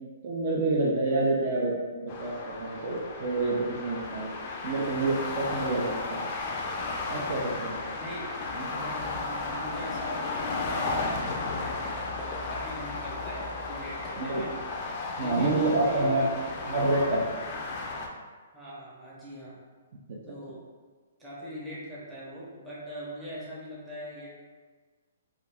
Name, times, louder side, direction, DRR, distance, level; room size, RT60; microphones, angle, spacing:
voice 1, 0.2-4.3 4.6-6.2 7.1-8.0 8.5-8.7 14.2-14.5 15.2-16.2 16.7-17.2 20.1-20.2, right 2 dB, 45° right, -3 dB, 0.4 m, -28 dB
sound 1, 2.1-18.1, left 3 dB, 35° left, 0.3 m, -34 dB
voice 2, 7.9-8.3 8.7-14.5 15.2-16.9 18.5-19.6 20.3-20.6 21.2-24.3, equal, 10° right, -8 dB, 0.7 m, -42 dB
2.3 x 2.3 x 3.3 m, 1.4 s
hypercardioid pair, 160°, 0 cm